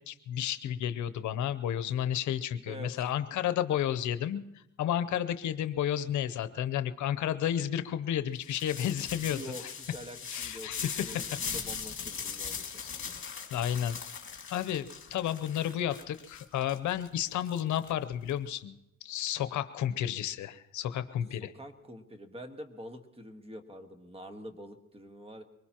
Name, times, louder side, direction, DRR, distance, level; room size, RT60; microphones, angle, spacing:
voice 1, 0.1-9.4 10.3-11.2 11.5-11.6 12.8-12.9 13.5-14.0 14.5-18.8 19.0-21.5, left 10 dB, 75° left, 12 dB, 0.8 m, -32 dB
sound 1, 8.4-18.3, left 6 dB, 45° left, 2.2 m, -40 dB
voice 2, 9.2-12.8 21.4-25.4, equal, 20° right, 7 dB, 1.5 m, -46 dB
23.5 x 20.0 x 3.0 m, 0.88 s
cardioid pair, 90°, 30 cm